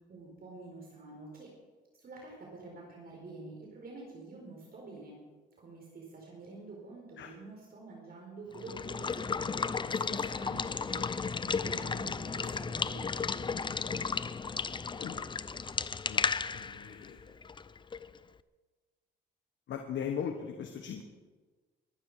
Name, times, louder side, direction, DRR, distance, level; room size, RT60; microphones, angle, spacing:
voice 1, 0.1-1.5 1.9-5.2 5.6-11.0 11.4-13.7, right 3 dB, 50° right, -1 dB, 4.7 m, -48 dB
Water / Water tap faucet / Liquid, 8.5-18.2, left 5 dB, 25° left, 0.5 m, -34 dB
voice 2, 16.5-17.2 19.7-21.0, left 8 dB, 70° left, 5 dB, 1.5 m, -38 dB
22.5 x 11.5 x 5.0 m, 1.4 s
cardioid pair, 90°, 20 cm